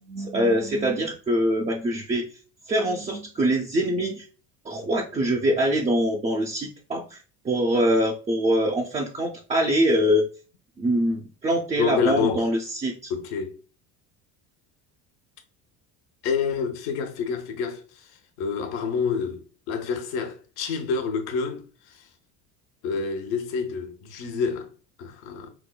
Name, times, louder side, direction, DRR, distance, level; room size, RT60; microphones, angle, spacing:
voice 1, 0.1-2.3 2.7-4.2 4.6-7.2 7.4-10.3 10.8-13.1, equal, 15° right, 0.3 m, -24 dB
voice 2, 11.8-12.5 13.1-13.6 16.2-19.4 19.7-22.0 22.8-24.7 25.0-25.5, left 6 dB, 65° left, 0.9 m, -28 dB
4.5 x 2.1 x 2.2 m
hypercardioid pair, 70°, 49 cm